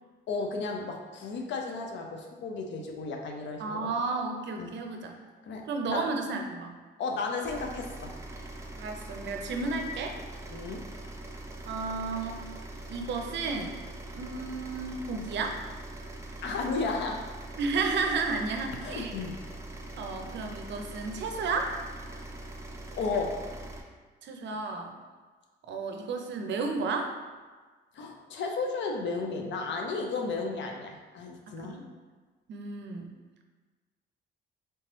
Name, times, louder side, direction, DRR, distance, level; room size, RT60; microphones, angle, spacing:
voice 1, 0.3-3.9 4.6-4.7 5.4-6.1 7.0-8.1 10.5-10.8 16.4-17.2 18.8-19.4 23.0-23.4 27.9-31.8, left 4 dB, 70° left, 2 dB, 0.6 m, -33 dB
voice 2, 3.6-5.1 5.7-6.8 8.8-10.2 11.7-12.4 12.9-13.8 14.1-15.6 17.6-19.1 20.0-21.7 24.2-24.9 25.7-27.1 31.5-31.8 32.5-33.1, right 4 dB, 65° right, 4 dB, 0.5 m, -32 dB
sound 1, 7.4-23.8, right 1 dB, 15° right, 0.4 m, -42 dB
3.4 x 3.0 x 3.0 m, 1.4 s
cardioid pair, 90°, 20 cm